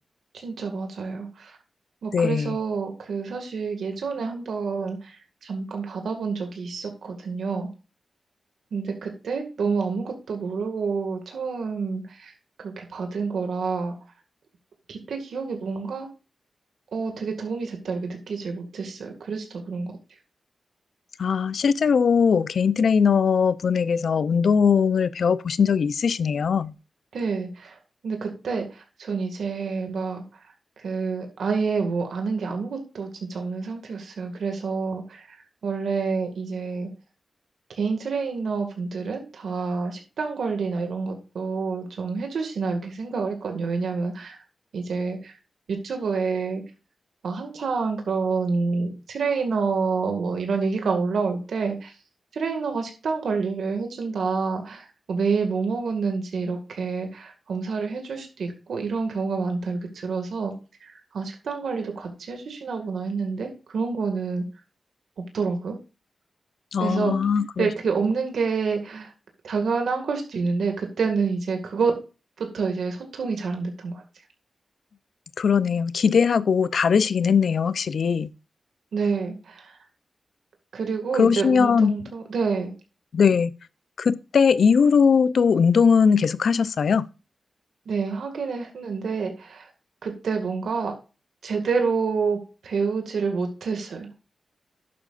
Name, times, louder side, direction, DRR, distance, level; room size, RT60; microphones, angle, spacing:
voice 1, 0.3-1.6 2.0-7.7 8.7-12.3 12.6-14.0 14.9-16.1 16.9-19.9 27.1-27.8 28.0-30.2 30.8-35.4 35.6-36.9 37.7-44.4 44.7-45.3 45.7-46.6 47.2-51.9 52.3-60.5 60.8-64.4 65.3-65.8 66.8-67.1 67.6-69.1 69.4-71.9 72.4-74.0 78.9-79.7 80.7-82.7 87.9-89.7 90.0-90.9 91.4-94.2, right 4 dB, 90° right, 2.0 m, -28 dB
voice 2, 2.1-2.6 21.2-26.7 66.7-67.7 75.4-78.3 81.1-82.0 83.1-83.5 84.0-87.1, left 6 dB, 70° left, 0.6 m, -20 dB
11.5 x 8.7 x 2.5 m
wide cardioid pair, 150°, 0 cm